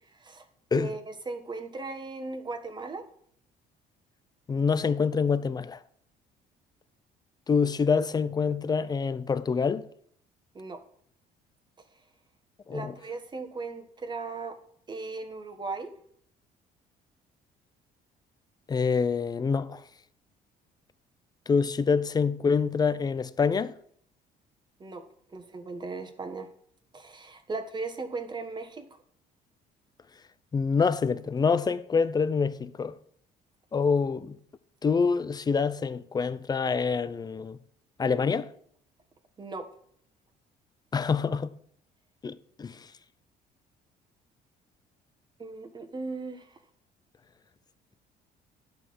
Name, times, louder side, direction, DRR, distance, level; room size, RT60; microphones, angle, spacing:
voice 1, 0.1-0.5 0.7-3.0 10.5-10.8 12.7-14.6 14.9-15.9 24.8-25.0 25.3-26.5 26.9-28.9 39.4-39.7 45.4-46.6, right 3 dB, 25° right, 1.3 m, -37 dB
voice 2, 4.5-5.8 7.5-9.8 12.7-12.9 18.7-19.8 21.5-23.7 30.5-32.9 33.7-34.4 34.8-37.6 38.0-38.5 40.9-41.5 42.2-42.9, left 5 dB, 25° left, 0.5 m, -26 dB
10.5 x 5.6 x 6.2 m
cardioid pair, 110°, 17 cm